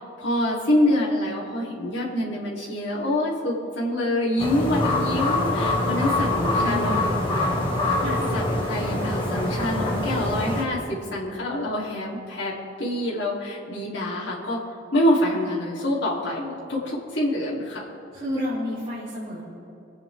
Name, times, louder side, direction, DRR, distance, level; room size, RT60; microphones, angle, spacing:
voice 1, 0.0-7.6 8.3-12.5 12.8-14.6 14.9-17.8, left 1 dB, 60° left, -7 dB, 3.3 m, -26 dB
sound 1, 4.4-10.6, left 2 dB, 25° left, 2.1 m, -24 dB
voice 2, 6.2-6.8 7.2-7.5 8.0-8.2 14.9-15.0 18.1-19.4, left 1 dB, 25° right, -11 dB, 3.5 m, -32 dB
26.5 x 8.9 x 3.6 m, 3.0 s
head